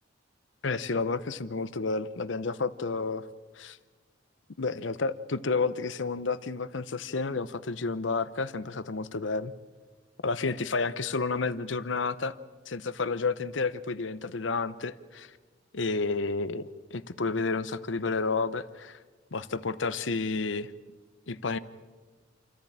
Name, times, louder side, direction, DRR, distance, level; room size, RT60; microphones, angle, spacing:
voice 1, 0.6-3.2 3.6-3.8 4.6-9.5 10.2-12.3 12.7-15.3 15.7-19.0 19.3-20.7 21.3-21.6, left 4 dB, 80° left, 15 dB, 0.8 m, -30 dB
28.0 x 14.0 x 8.7 m, 1.4 s
head